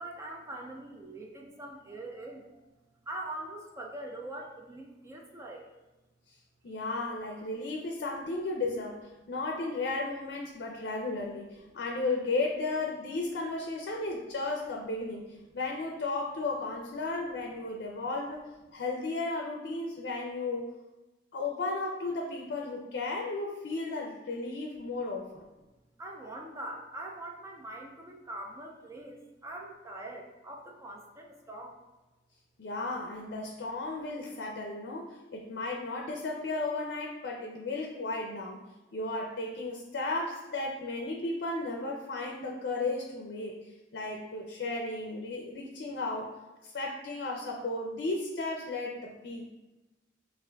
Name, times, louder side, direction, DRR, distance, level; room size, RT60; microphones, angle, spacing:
voice 1, 0.0-2.6 3.1-5.7 26.0-31.8, right 1 dB, 15° right, 0 dB, 0.4 m, -43 dB
voice 2, 6.6-20.7 21.3-25.5 32.6-38.6 38.9-46.3 46.6-49.4, left 2 dB, 65° left, 0 dB, 0.5 m, -34 dB
6.6 x 2.5 x 2.3 m, 1.1 s
head